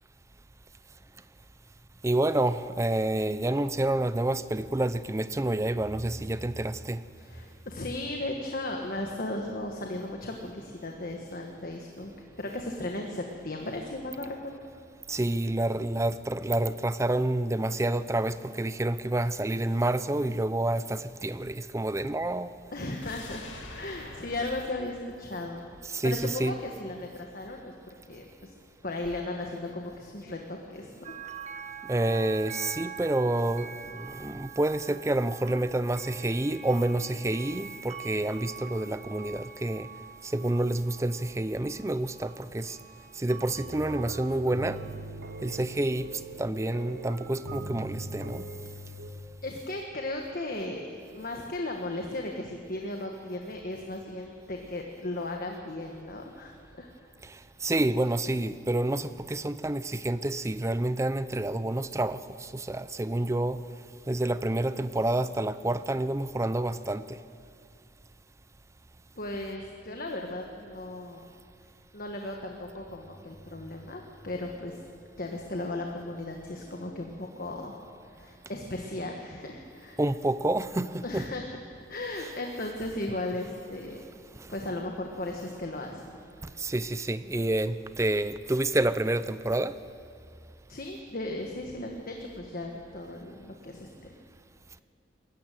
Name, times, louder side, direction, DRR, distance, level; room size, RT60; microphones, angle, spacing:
voice 1, 2.0-7.0 15.1-22.5 25.9-26.1 26.4-26.5 31.9-39.9 40.3-42.8 43.2-44.8 45.4-46.1 46.4-48.4 57.6-62.2 62.5-63.6 64.1-67.2 80.0-81.2 86.6-89.7, right 1 dB, 15° right, 0.5 m, -28 dB
voice 2, 7.2-12.1 12.4-14.5 22.7-25.6 26.0-27.7 28.0-28.5 28.8-31.1 49.4-57.1 69.2-71.3 71.9-74.8 75.2-77.8 78.1-80.0 81.0-81.6 81.9-84.0 84.5-86.1 90.7-93.9, left 2 dB, 50° left, 1.4 m, -36 dB
sound 1, 23.0-26.2 26.5-26.6, left 2 dB, 75° left, 2.1 m, -46 dB
sound 2, 31.0-46.1 46.7-47.0, right 7 dB, 40° right, 1.1 m, -45 dB
sound 3, 43.5-49.1, right 2 dB, 70° right, 1.7 m, -41 dB
22.0 x 13.5 x 9.2 m
head